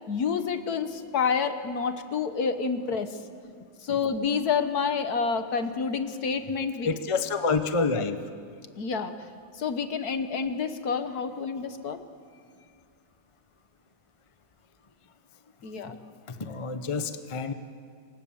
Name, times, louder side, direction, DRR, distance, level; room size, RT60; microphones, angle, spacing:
voice 1, 0.0-3.2 3.8-6.9 8.8-9.3 9.5-12.0 15.6-16.0, left 5 dB, 55° left, 9 dB, 1.6 m, -28 dB
voice 2, 6.8-8.2 16.4-17.5, left 4 dB, 30° left, 9 dB, 0.6 m, -27 dB
27.0 x 23.5 x 7.2 m, 2.2 s
omnidirectional pair, 2.1 m